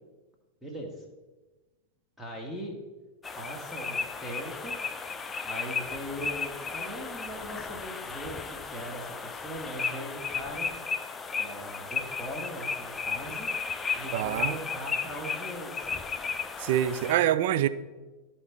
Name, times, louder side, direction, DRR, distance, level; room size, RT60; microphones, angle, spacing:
voice 1, 0.6-1.0 2.2-2.8 3.3-4.8 5.4-10.7 11.4-13.5 13.9-16.0, equal, ahead, 1.4 m, -40 dB
sound 1, 3.2-17.1, left 5 dB, 15° left, 0.4 m, -34 dB
voice 2, 14.1-14.6 16.6-17.7, right 12 dB, 50° right, 0.3 m, -25 dB
12.5 x 4.3 x 3.5 m
figure-of-eight pair, 90°, 0 cm